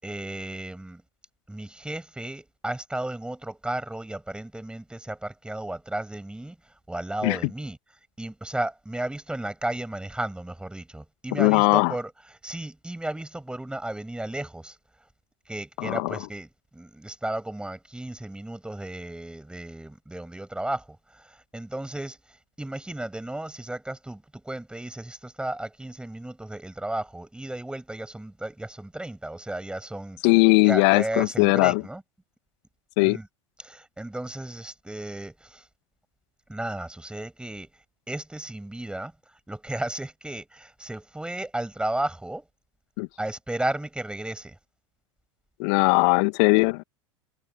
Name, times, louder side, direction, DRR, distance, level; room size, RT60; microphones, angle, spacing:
voice 1, 0.0-1.0 1.5-6.6 6.9-7.8 8.2-14.8 15.5-30.2 30.6-32.0 33.0-33.3 33.6-35.6 36.5-37.7 38.1-39.1 39.5-42.4 43.2-44.6, right 1 dB, 5° right, 6.7 m, -34 dB
voice 2, 11.3-11.9 15.8-16.2 30.2-31.8 33.0-33.2 43.0-43.1 45.6-46.8, left 31 dB, 55° left, 2.2 m, -20 dB
figure-of-eight pair, 85°, 16 cm